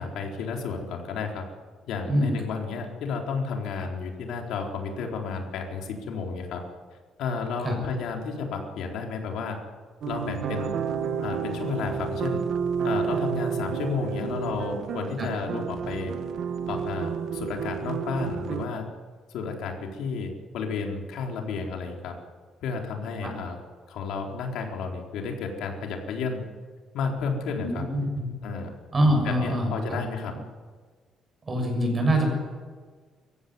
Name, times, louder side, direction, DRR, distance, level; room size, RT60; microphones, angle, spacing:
voice 1, 0.0-1.4 1.9-6.6 7.2-9.6 10.0-10.7 11.2-12.4 12.8-16.1 16.7-18.9 19.3-22.1 22.6-23.6 23.9-26.4 26.9-27.8 28.4-28.7 29.2-30.3, left 5 dB, 80° left, 2 dB, 4.1 m, -32 dB
voice 2, 2.0-2.3 7.6-7.8 15.2-15.3 23.2-23.3 27.6-28.3 28.9-30.0 31.5-32.3, equal, 25° right, 3 dB, 6.8 m, -24 dB
sound 1, 10.0-18.7, right 7 dB, 60° right, 1.6 m, -30 dB
23.5 x 15.0 x 9.7 m, 1.5 s
cardioid pair, 145°, 0 cm